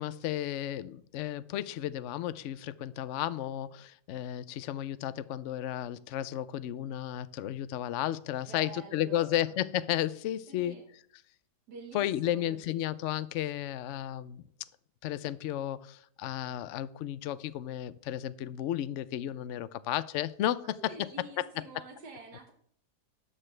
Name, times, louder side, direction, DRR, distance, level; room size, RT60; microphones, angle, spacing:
voice 1, 0.0-10.8 11.9-14.5 15.0-21.1 21.4-21.6, left 12 dB, 70° left, 0.7 m, -33 dB
voice 2, 8.5-9.5 10.5-10.9 11.7-12.9 20.6-22.5, right 3 dB, 85° right, 1.9 m, -48 dB
13.0 x 8.9 x 3.3 m
omnidirectional pair, 1.7 m